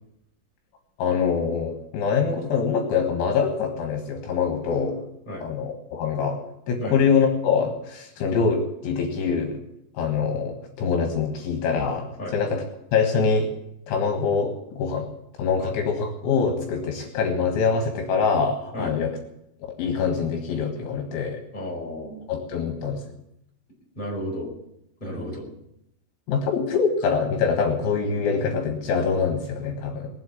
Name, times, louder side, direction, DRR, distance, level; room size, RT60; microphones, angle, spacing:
voice 1, 1.0-5.0 5.4-6.4 6.7-9.6 10.0-12.1 12.3-12.6 12.9-13.5 13.9-15.1 15.4-19.1 19.6-21.4 22.3-23.1 26.3-30.1, left 5 dB, 75° left, 4 dB, 3.8 m, -24 dB
voice 2, 21.5-22.2 23.9-24.5 25.0-25.5, equal, 10° left, -2 dB, 5.0 m, -33 dB
20.5 x 8.0 x 8.4 m, 0.80 s
omnidirectional pair, 5.7 m